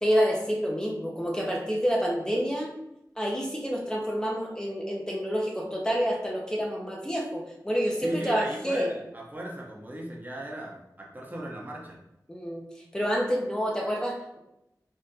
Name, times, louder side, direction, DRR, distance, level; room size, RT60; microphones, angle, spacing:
voice 1, 0.0-2.7 3.2-8.9 12.3-14.4, equal, 10° left, -2 dB, 0.7 m, -28 dB
voice 2, 8.0-12.0, right 1 dB, 25° right, -2 dB, 0.8 m, -37 dB
3.6 x 2.5 x 2.7 m, 0.84 s
wide cardioid pair, 45°, 7 cm